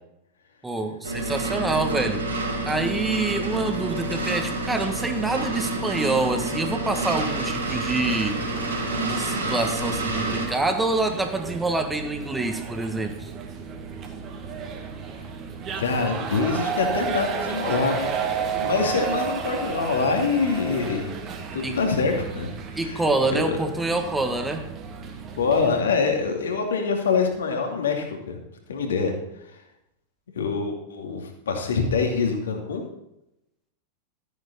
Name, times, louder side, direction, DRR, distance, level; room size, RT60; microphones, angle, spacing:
voice 1, 0.6-2.2 2.6-8.4 9.0-13.3 21.6-21.8 22.8-24.7, right 2 dB, 10° right, 5 dB, 1.7 m, -26 dB
sound 1, 1.0-10.5, right 2 dB, 75° right, 3.5 m, -28 dB
sound 2, 6.9-25.8, right 6 dB, 30° right, 1.9 m, -33 dB
voice 2, 15.8-18.2 18.6-21.1 21.5-23.0 23.3-23.6 25.4-28.4 28.7-29.1 30.3-32.8, left 5 dB, 65° left, 3 dB, 2.4 m, -25 dB
13.5 x 9.4 x 4.2 m, 0.84 s
figure-of-eight pair, 90°, 0 cm